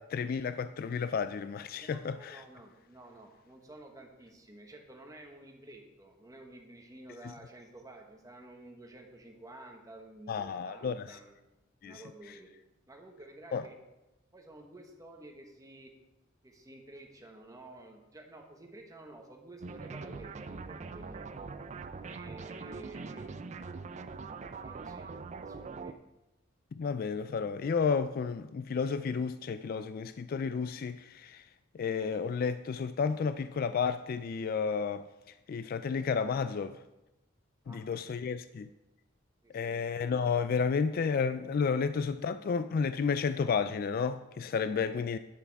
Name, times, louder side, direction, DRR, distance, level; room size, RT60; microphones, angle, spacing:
voice 1, 0.0-2.4 10.3-11.2 11.8-12.0 13.5-13.6 26.7-31.4 31.7-35.0 35.5-36.8 37.7-38.7 39.5-45.2, left 5 dB, 50° left, 11 dB, 0.3 m, -32 dB
voice 2, 1.8-11.4 11.8-12.5 12.9-13.8 14.3-15.9 16.4-21.5 22.0-23.6 24.6-26.0 37.6-37.8 38.1-38.3 39.4-39.8, right 1 dB, 20° right, 2 dB, 1.2 m, -51 dB
sound 1, 19.6-25.9, right 4 dB, 35° right, 0.4 m, -43 dB
9.4 x 6.8 x 4.7 m, 0.99 s
head